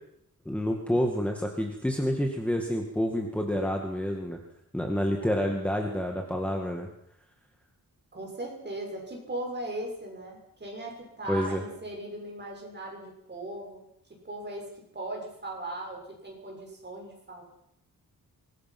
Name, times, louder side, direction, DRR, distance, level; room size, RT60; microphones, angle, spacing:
voice 1, 0.5-4.4 4.7-6.9 11.3-11.6, equal, 5° left, 2 dB, 1.9 m, -28 dB
voice 2, 8.1-17.4, right 1 dB, 30° right, 0 dB, 6.8 m, -38 dB
25.0 x 21.0 x 6.1 m, 0.75 s
wide cardioid pair, 180°, 36 cm